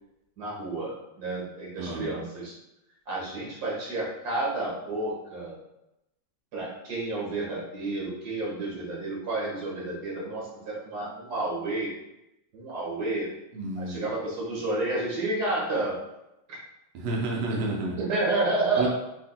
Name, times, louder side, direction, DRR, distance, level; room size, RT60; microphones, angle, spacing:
voice 1, 0.4-2.5 3.1-5.6 6.5-11.9 12.5-13.3 13.7-16.0 16.5-16.6 18.0-18.9, right 2 dB, 45° right, -5 dB, 1.4 m, -30 dB
voice 2, 1.8-2.1 13.5-14.0 16.9-18.1 18.7-18.9, right 2 dB, 70° right, -2 dB, 1.5 m, -30 dB
6.2 x 3.7 x 2.2 m, 0.89 s
omnidirectional pair, 3.5 m